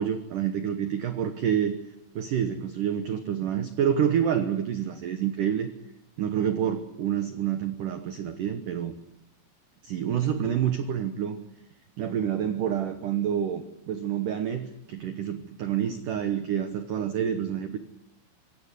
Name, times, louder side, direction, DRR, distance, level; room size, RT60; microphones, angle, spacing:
voice 1, 0.0-1.8 2.2-5.7 6.2-8.9 9.8-11.4 12.0-17.8, right 9 dB, 90° right, 9 dB, 1.8 m, -28 dB
25.5 x 17.5 x 8.4 m, 0.89 s
omnidirectional pair, 5.7 m